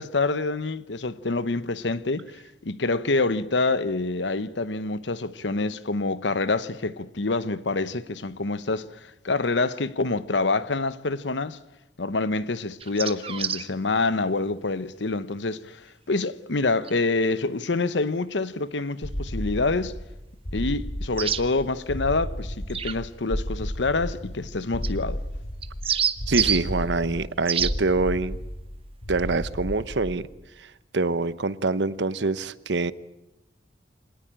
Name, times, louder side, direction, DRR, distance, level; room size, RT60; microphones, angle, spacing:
voice 1, 0.0-11.6 12.0-20.0 20.5-25.2, left 3 dB, 85° left, 1.0 m, -27 dB
sound 1, 12.8-13.7 16.8-16.9 21.2-21.4 22.7-23.0 24.8-24.9 25.6-26.6 27.5-27.7, right 8 dB, 35° right, 1.0 m, -26 dB
sound 2, 19.0-30.4, equal, 50° left, 2.3 m, -33 dB
voice 2, 26.3-28.4 29.1-30.3 30.6-32.9, right 3 dB, 80° right, 1.0 m, -25 dB
26.0 x 19.5 x 8.9 m
head